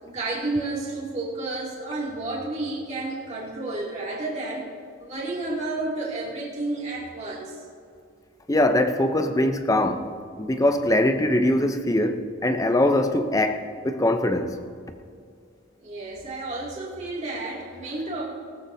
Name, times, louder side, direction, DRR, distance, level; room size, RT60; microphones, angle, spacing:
voice 1, 0.0-4.6 5.0-7.6 15.8-18.2, right 2 dB, 30° right, 2.5 m, -31 dB
voice 2, 8.5-14.6, left 1 dB, 15° left, 0.6 m, -22 dB
19.5 x 13.0 x 2.7 m
head